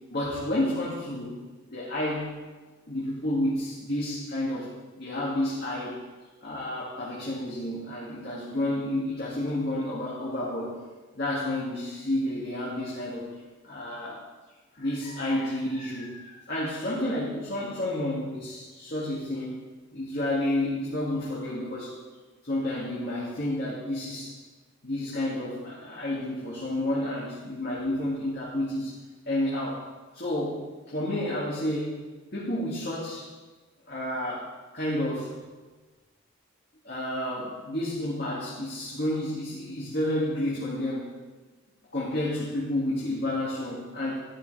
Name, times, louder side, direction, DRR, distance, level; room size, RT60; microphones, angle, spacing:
voice 1, 0.1-1.3 1.7-2.3 2.9-4.7 5.0-6.0 6.4-10.8 11.2-13.3 13.6-14.2 14.7-19.6 19.9-22.0 22.4-24.4 24.8-28.9 29.3-29.9 30.1-32.0 32.3-33.3 33.9-35.3 36.8-41.1 41.9-44.2, left 1 dB, 50° left, -7 dB, 2.2 m, -30 dB
12.0 x 11.5 x 3.4 m, 1.3 s
head